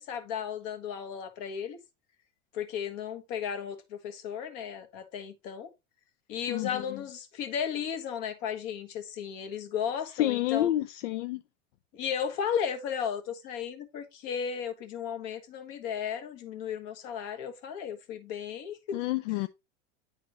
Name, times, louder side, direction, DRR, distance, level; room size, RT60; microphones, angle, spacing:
voice 1, 0.0-1.8 2.5-5.7 6.3-10.7 11.9-19.0, left 8 dB, 55° left, 1.4 m, -35 dB
voice 2, 6.5-7.0 10.1-11.4 18.9-19.5, left 14 dB, 80° left, 0.5 m, -29 dB
9.6 x 4.1 x 2.9 m
hypercardioid pair, 110°, 37 cm